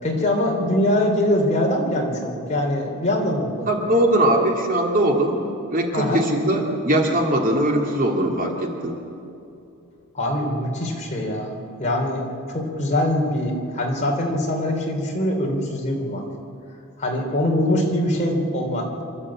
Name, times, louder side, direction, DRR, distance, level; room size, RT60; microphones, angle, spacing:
voice 1, 0.0-3.7 5.9-6.2 10.1-16.3 17.0-19.0, left 1 dB, 30° left, -1 dB, 3.4 m, -23 dB
voice 2, 3.7-5.4 5.7-9.0, right 1 dB, 40° right, 0 dB, 2.4 m, -20 dB
27.0 x 12.5 x 8.7 m, 2.7 s
head